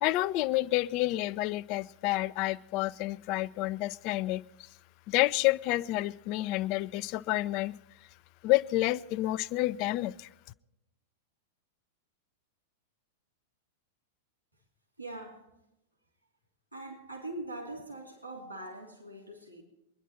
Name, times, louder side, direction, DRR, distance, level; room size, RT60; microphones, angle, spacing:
voice 1, 0.0-4.4 5.1-7.7 8.4-10.3, left 17 dB, 40° left, 0.5 m, -29 dB
voice 2, 15.0-15.5 16.7-19.6, right 2 dB, 90° right, 3.3 m, -42 dB
23.5 x 11.0 x 4.3 m
figure-of-eight pair, 95°, 0 cm